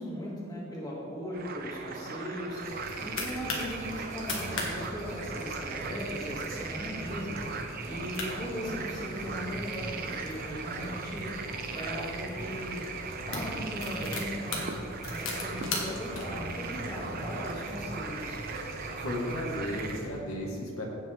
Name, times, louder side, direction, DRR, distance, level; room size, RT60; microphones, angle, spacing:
voice 1, 0.0-2.6 3.0-7.4 7.9-11.4 11.7-12.8 13.3-14.7 15.1-18.4, equal, 20° left, -6 dB, 2.3 m, -38 dB
sound 1, 1.3-20.0, right 5 dB, 45° right, 0.7 m, -39 dB
sound 2, 2.6-3.7 4.1-4.7 5.0-5.1 5.4-5.8 6.3-6.6 7.0-7.1 7.8-7.9 8.1-9.3 9.9-11.8 12.6-12.7 13.1-16.2, left 3 dB, 70° left, 1.6 m, -37 dB
sound 3, 2.6-20.1, right 1 dB, 65° right, 1.3 m, -42 dB
voice 2, 19.0-20.8, left 1 dB, 85° left, -2 dB, 1.8 m, -34 dB
16.0 x 5.8 x 3.6 m, 2.4 s
head